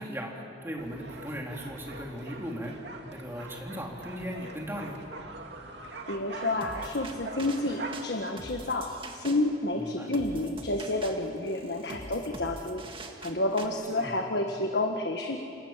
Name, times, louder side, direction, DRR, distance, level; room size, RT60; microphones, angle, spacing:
voice 1, 0.0-2.7 3.1-5.0 9.7-10.1 14.0-14.2, equal, 15° right, -1 dB, 3.9 m, -37 dB
sound 1, 0.8-8.0, right 3 dB, 70° right, 2.5 m, -43 dB
voice 2, 6.1-12.8 13.2-15.4, left 2 dB, 65° left, 3 dB, 1.6 m, -30 dB
sound 2, 6.6-13.7, right 2 dB, 30° right, 2.0 m, -45 dB
28.0 x 28.0 x 7.6 m, 2.8 s
head